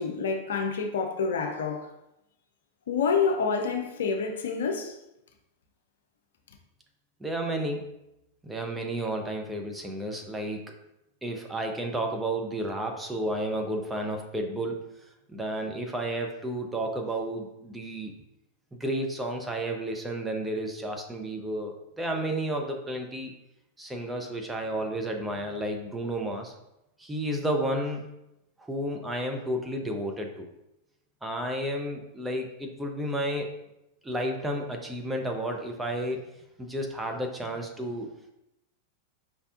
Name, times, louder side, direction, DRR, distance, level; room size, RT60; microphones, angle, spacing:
voice 1, 0.0-1.9 2.9-5.0, left 5 dB, 60° left, 0.6 m, -28 dB
voice 2, 7.2-8.0 8.4-10.7 11.2-14.8 15.3-18.1 18.7-23.3 23.8-26.5 27.0-28.1 28.6-30.5 31.2-33.5 34.0-36.3 36.6-38.1, right 1 dB, 10° right, 0.6 m, -32 dB
5.2 x 3.4 x 2.5 m
figure-of-eight pair, 90°, 0 cm